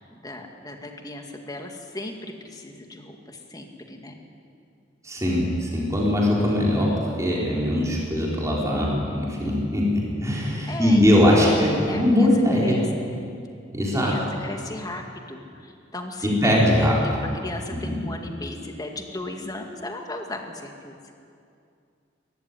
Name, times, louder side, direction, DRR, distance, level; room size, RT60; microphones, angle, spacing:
voice 1, 0.1-4.2 10.7-11.1 11.4-12.3 12.6-12.8 13.9-20.9, left 2 dB, 20° left, 3 dB, 2.1 m, -36 dB
voice 2, 5.0-12.8 13.7-14.2 16.2-17.0 17.7-18.0, left 1 dB, 15° right, -4 dB, 4.2 m, -21 dB
23.0 x 14.0 x 9.9 m, 2.4 s
head